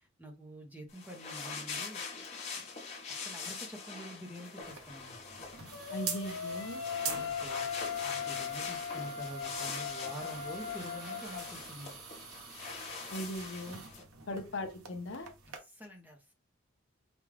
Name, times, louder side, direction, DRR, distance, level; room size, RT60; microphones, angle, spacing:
voice 1, 0.0-2.0 2.6-2.7 3.1-5.2 7.0-7.7 8.0-12.0 14.3-14.4 15.4-16.3, equal, 10° right, 0.7 m, -47 dB
sound 1, 0.9-14.0, left 4 dB, 30° left, 1.0 m, -43 dB
sound 2, 4.6-15.6, right 6 dB, 90° right, 0.9 m, -46 dB
sound 3, 5.7-11.5, left 7 dB, 85° left, 1.2 m, -39 dB
voice 2, 5.9-6.8 13.1-13.8 14.3-15.3, left 1 dB, 55° left, 0.7 m, -39 dB
5.0 x 2.3 x 3.2 m
head